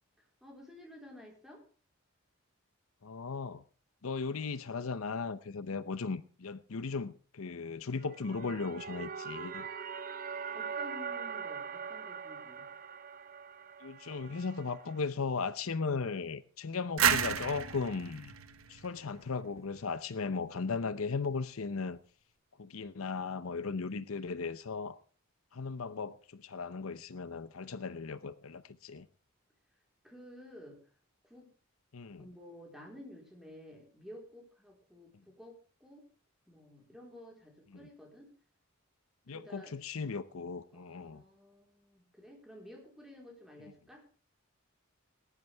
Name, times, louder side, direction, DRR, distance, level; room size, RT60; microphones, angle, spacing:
voice 1, 0.2-1.6 10.5-12.7 30.0-30.8 31.2-31.5 32.2-36.0 36.5-38.3 39.3-39.8 40.7-44.0, left 1 dB, ahead, 4.0 m, -52 dB
voice 2, 3.0-3.6 4.0-9.7 13.8-18.3 18.7-22.0 22.6-25.0 25.5-29.1 31.9-32.3 37.7-37.9 39.3-41.2, left 4 dB, 80° left, 0.7 m, -37 dB
sound 1, 8.0-15.0, right 6 dB, 40° right, 0.8 m, -42 dB
sound 2, 17.0-19.7, right 8 dB, 80° right, 1.3 m, -31 dB
19.5 x 11.0 x 3.4 m
head